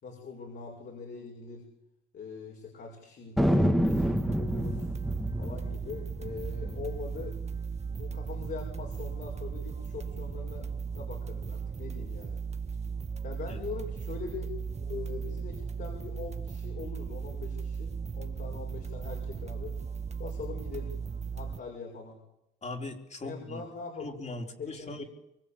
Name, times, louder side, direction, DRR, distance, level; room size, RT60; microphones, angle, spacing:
voice 1, 0.0-1.6 2.1-4.8 5.4-7.4 7.9-12.4 13.2-14.5 14.8-19.8 20.2-21.0 21.3-22.2 23.2-24.1 24.6-25.1, left 5 dB, 55° left, 0 dB, 6.1 m, -42 dB
Thunder, 3.4-8.2 8.4-8.5 8.8-9.3 9.8-11.0, equal, ahead, 2.6 m, -29 dB
sound 1, 3.8-21.6, right 6 dB, 35° right, 1.6 m, -37 dB
voice 2, 22.6-23.6 24.0-25.0, left 2 dB, 35° left, 4 dB, 4.4 m, -39 dB
24.5 x 23.5 x 8.7 m, 0.85 s
cardioid pair, 90°, 20 cm